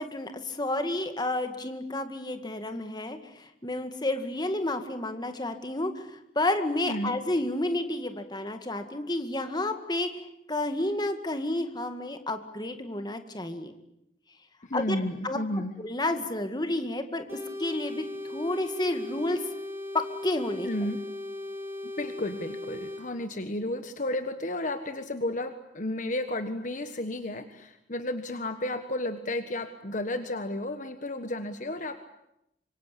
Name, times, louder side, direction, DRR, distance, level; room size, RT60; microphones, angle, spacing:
voice 1, 0.0-13.7 14.7-15.0 15.2-19.4 19.9-20.7, left 1 dB, 25° left, 8 dB, 2.1 m, -31 dB
voice 2, 6.9-7.2 14.6-15.7 20.6-21.0 21.8-32.0, left 1 dB, 45° left, 9 dB, 1.4 m, -32 dB
sound 1, 17.3-23.0, left 2 dB, 15° right, 6.6 m, -38 dB
26.0 x 24.0 x 8.5 m, 0.81 s
head